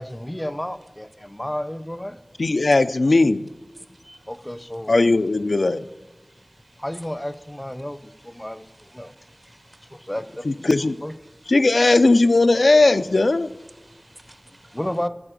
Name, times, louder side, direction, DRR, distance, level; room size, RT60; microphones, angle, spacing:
voice 1, 0.0-2.2 4.3-4.9 6.8-8.0 8.3-8.6 8.9-9.1 10.1-10.4 10.8-11.1 14.7-15.1, left 1 dB, 15° left, 0.5 m, -31 dB
voice 2, 2.4-3.5 4.9-5.8 10.5-11.0 11.5-13.5, left 2 dB, 80° left, 0.3 m, -17 dB
voice 3, 3.7-4.4 4.8-5.0 5.5-7.1 7.8-10.4 10.8-11.0 11.2-12.0 12.3-14.8, right 1 dB, 35° right, 0.6 m, -53 dB
14.5 x 4.8 x 5.1 m
wide cardioid pair, 55°, 0 cm